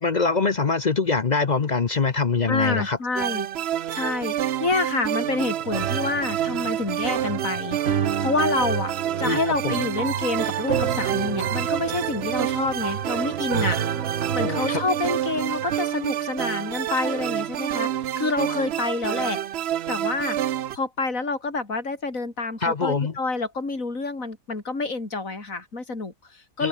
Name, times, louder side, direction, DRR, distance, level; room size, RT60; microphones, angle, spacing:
voice 1, 0.0-3.0 9.2-9.7 14.4-14.8 22.6-23.1 26.6-26.7, left 4 dB, 40° left, 0.7 m, -23 dB
voice 2, 2.5-3.5 3.9-8.9 9.2-13.8 14.3-19.4 19.9-20.4 20.7-26.7, left 3 dB, 55° left, 4.9 m, -28 dB
sound 1, 3.2-20.8, right 11 dB, 65° right, 0.6 m, -28 dB
sound 2, 5.6-15.8, right 7 dB, 50° right, 1.4 m, -31 dB
omnidirectional pair, 1.7 m